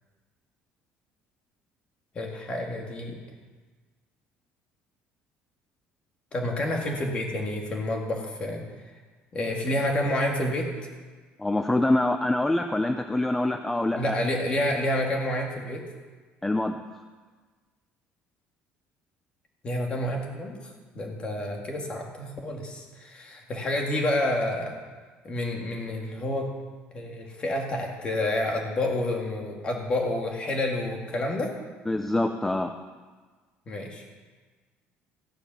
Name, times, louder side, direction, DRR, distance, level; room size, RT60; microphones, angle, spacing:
voice 1, 2.1-3.2 6.3-8.6 9.3-10.7 13.9-15.8 19.6-24.8 25.2-26.5 26.9-31.5 33.7-34.1, left 1 dB, 25° left, 1 dB, 1.9 m, -29 dB
voice 2, 11.4-14.2 16.4-16.8 31.9-32.7, left 1 dB, 5° left, 7 dB, 0.5 m, -25 dB
15.0 x 10.5 x 6.1 m, 1.4 s
cardioid pair, 170°, 4 cm